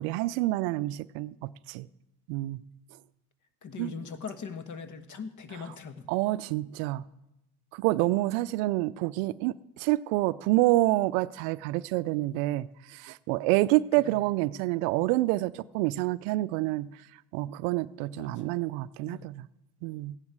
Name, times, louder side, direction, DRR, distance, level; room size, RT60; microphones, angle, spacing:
voice 1, 0.0-1.9 2.3-2.6 3.8-4.0 6.1-7.0 7.7-12.7 12.9-16.9 17.3-19.5 19.8-20.1, right 18 dB, 70° right, 0.5 m, -28 dB
voice 2, 3.6-6.0 14.0-14.2 18.1-18.4 19.1-19.3, left 6 dB, 40° left, 1.4 m, -41 dB
15.5 x 10.5 x 4.8 m
hypercardioid pair, 75°, 45 cm